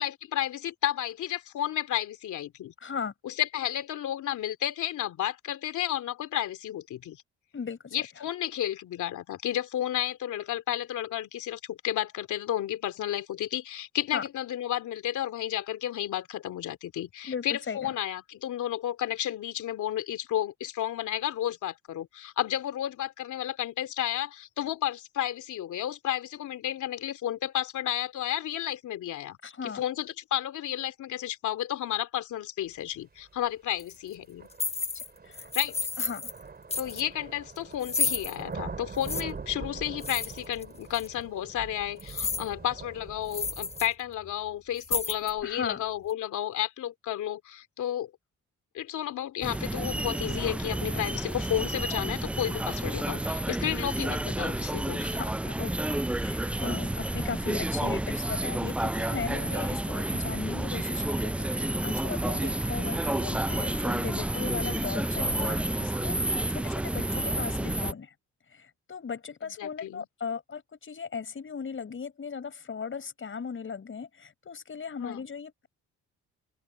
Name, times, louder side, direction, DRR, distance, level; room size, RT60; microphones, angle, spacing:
voice 1, 0.0-2.7 3.2-7.2 7.9-29.4 29.6-34.5 35.5-35.8 36.8-48.1 48.7-55.0 69.4-70.1 75.0-75.3, left 11 dB, 75° left, 2.8 m, -32 dB
voice 2, 2.8-3.1 7.5-8.0 14.1-14.2 17.2-17.9 29.4-29.8 34.9-35.5 36.0-36.2 45.4-45.8 55.0-68.1 68.5-75.7, left 6 dB, 40° left, 6.1 m, -37 dB
sound 1, 33.3-33.4 34.4-43.9, right 4 dB, 30° right, 3.7 m, -43 dB
Keys - keychain jingling and falling on soft surfaces, 33.8-34.0 34.5-35.1 35.3-36.4 36.7-37.0 37.8-38.4 39.0-39.2 40.0-40.6 40.9-41.1 42.0-42.5 42.9-43.0 43.3-43.9 44.2-44.3 44.8-45.4, left 4 dB, 20° left, 0.9 m, -31 dB
sound 2, 49.4-67.9, right 1 dB, 5° right, 0.3 m, -30 dB
open air
cardioid pair, 90°, 30 cm